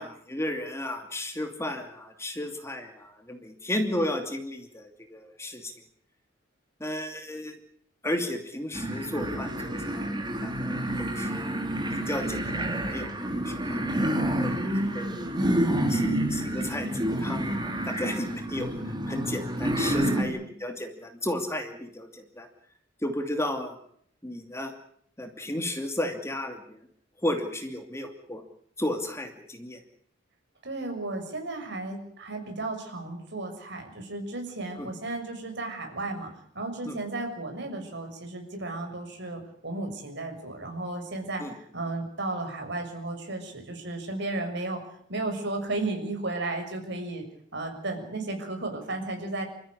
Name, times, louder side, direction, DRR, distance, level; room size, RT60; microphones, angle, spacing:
voice 1, 0.0-5.7 6.8-7.6 8.0-10.1 10.4-11.4 11.9-13.8 14.4-14.6 14.9-15.3 15.9-16.0 16.3-18.7 19.1-22.5 23.0-23.7 24.2-24.7 25.2-26.8 27.2-28.4 28.8-29.8 34.8-34.9 36.8-37.0 41.4-41.5, left 1 dB, 15° left, 5 dB, 2.7 m, -33 dB
sound 1, 8.7-20.2, right 1 dB, 20° right, 3.7 m, -29 dB
voice 2, 20.0-20.5 30.6-36.3 36.5-44.8 45.1-47.2 47.5-49.5, right 2 dB, 60° right, 4 dB, 6.7 m, -34 dB
28.0 x 14.5 x 10.0 m, 0.67 s
head